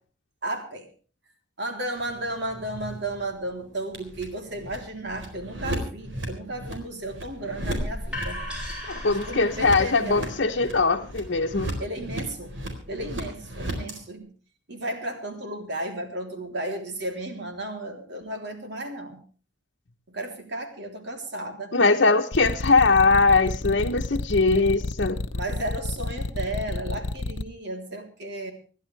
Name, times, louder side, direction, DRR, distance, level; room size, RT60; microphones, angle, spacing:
voice 1, 0.4-0.9 1.6-8.4 9.0-10.3 11.8-12.5 12.9-14.3 14.7-19.2 20.1-21.8 25.3-28.5, right 1 dB, 65° right, 4 dB, 3.5 m, -34 dB
sound 1, 2.0-14.0, right 1 dB, 85° right, 4.2 m, -37 dB
sound 2, 7.6-13.4, left 1 dB, 5° right, 7.1 m, -38 dB
voice 2, 8.9-11.7 21.7-25.2, left 3 dB, 65° left, 1 dB, 1.1 m, -21 dB
sound 3, 22.3-27.4, left 2 dB, 85° left, 0.8 m, -30 dB
26.5 x 11.0 x 3.4 m, 0.40 s
head